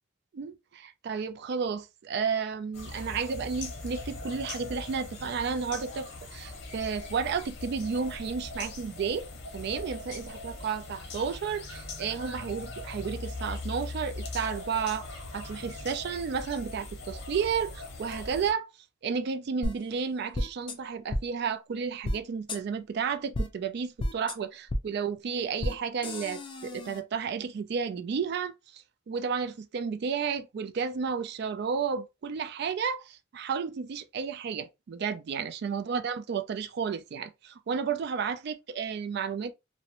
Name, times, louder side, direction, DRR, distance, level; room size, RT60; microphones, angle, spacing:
voice 1, 0.3-15.1 15.3-18.7 19.0-39.5, right 6 dB, 55° right, 0.3 m, -32 dB
sound 1, 2.7-18.5, left 2 dB, 55° left, 0.7 m, -40 dB
sound 2, 19.6-19.7 20.3-20.7 21.1-21.2 22.0-22.2 22.5-22.6 23.3-23.5 24.0-24.3 24.7-24.8 25.6-25.7 26.0-27.0, left 1 dB, 25° left, 0.4 m, -31 dB
2.8 x 2.1 x 2.5 m
head